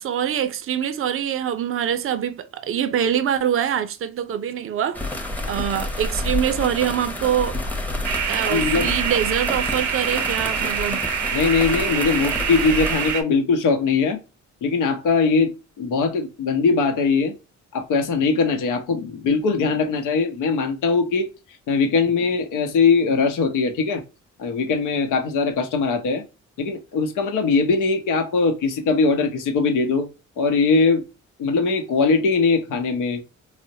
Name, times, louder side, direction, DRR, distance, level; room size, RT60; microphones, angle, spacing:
voice 1, 0.0-7.6 8.3-11.0, right 9 dB, 45° right, 0.5 m, -24 dB
sound 1, 4.9-13.1, left 1 dB, 5° left, 0.7 m, -29 dB
sound 2, 8.0-13.2, right 8 dB, 85° right, 0.7 m, -26 dB
voice 2, 8.5-8.9 11.3-14.2 14.6-17.3 17.7-21.3 21.7-24.0 24.4-26.2 26.6-30.1 30.4-31.0 31.4-33.2, left 4 dB, 85° left, 0.9 m, -21 dB
4.1 x 2.0 x 2.7 m
cardioid pair, 90°, 30 cm